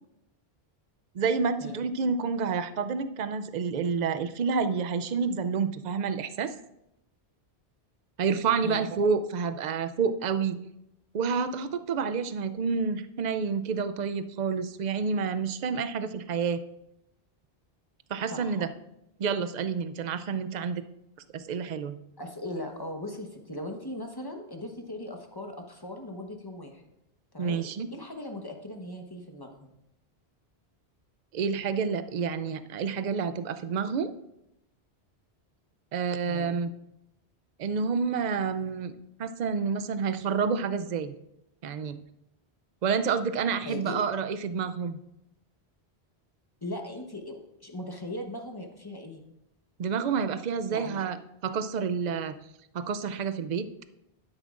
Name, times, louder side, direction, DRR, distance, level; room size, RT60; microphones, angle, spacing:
voice 1, 1.1-6.5 8.2-10.6 11.1-16.6 18.1-18.7 19.2-20.8 21.3-22.0 27.4-27.9 31.3-34.1 35.9-36.7 37.6-38.9 39.2-41.1 41.6-42.0 42.8-45.0 49.8-51.2 51.4-52.3 52.7-53.7, right 5 dB, 50° right, 11 dB, 0.6 m, -29 dB
voice 2, 22.2-26.8 27.3-27.6 27.9-29.7 36.2-36.6 43.7-44.0 46.6-49.2 50.7-51.0, left 1 dB, 20° left, 3 dB, 1.1 m, -39 dB
12.0 x 9.9 x 2.5 m, 0.82 s
omnidirectional pair, 1.1 m